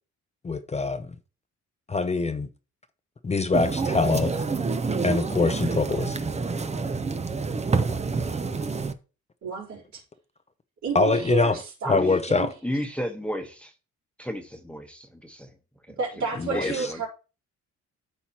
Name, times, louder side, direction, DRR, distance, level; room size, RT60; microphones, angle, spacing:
voice 1, 0.4-1.2 1.9-2.5 3.2-4.6 5.0-6.2 10.9-11.6 11.9-12.5 16.4-16.9, left 3 dB, 20° left, 0.7 m, -24 dB
sound 1, 3.5-8.9, right 4 dB, 20° right, 0.7 m, -27 dB
voice 2, 9.4-10.0 10.8-12.0 12.3-12.5 15.9-17.1, right 4 dB, 65° right, 3.8 m, -31 dB
voice 3, 11.8-12.2 12.6-13.7 14.2-15.5 15.9-16.0 16.5-17.0, equal, 5° left, 1.2 m, -32 dB
12.5 x 4.3 x 2.9 m
cardioid pair, 90°, 30 cm